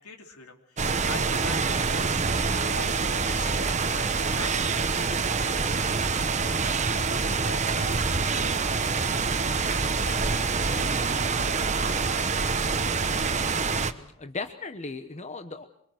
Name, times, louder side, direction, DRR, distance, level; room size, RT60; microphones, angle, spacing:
voice 1, 0.0-2.1 2.7-6.7 7.1-12.5, left 3 dB, 85° left, 4 dB, 3.1 m, -45 dB
sound 1, 0.8-13.9, right 4 dB, 30° right, 1.1 m, -26 dB
voice 2, 13.5-15.6, left 3 dB, 30° left, 8 dB, 1.1 m, -38 dB
25.0 x 23.5 x 6.5 m, 0.67 s
head